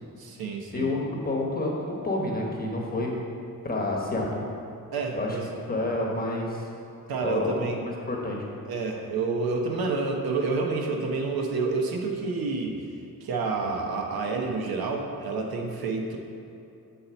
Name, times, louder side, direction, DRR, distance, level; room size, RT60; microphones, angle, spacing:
voice 1, 0.2-0.9 4.9-5.6 7.1-7.8 8.7-12.8 13.2-16.2, right 3 dB, 80° right, 2 dB, 1.0 m, -29 dB
voice 2, 0.7-3.1 3.6-4.4 5.1-5.4 5.7-6.7 7.2-8.4, left 2 dB, 25° left, -2 dB, 1.1 m, -29 dB
7.6 x 4.3 x 6.9 m, 2.8 s
wide cardioid pair, 175°, 36 cm